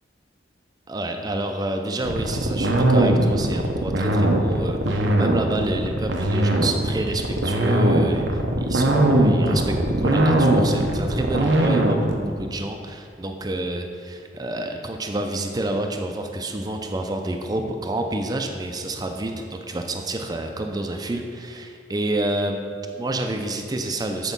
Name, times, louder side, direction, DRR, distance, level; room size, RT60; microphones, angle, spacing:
voice 1, 0.9-24.3, right 2 dB, 20° right, 4 dB, 0.5 m, -28 dB
sound 1, 2.0-12.2, right 1 dB, 85° right, 0.8 m, -20 dB
8.2 x 4.6 x 5.3 m, 2.3 s
head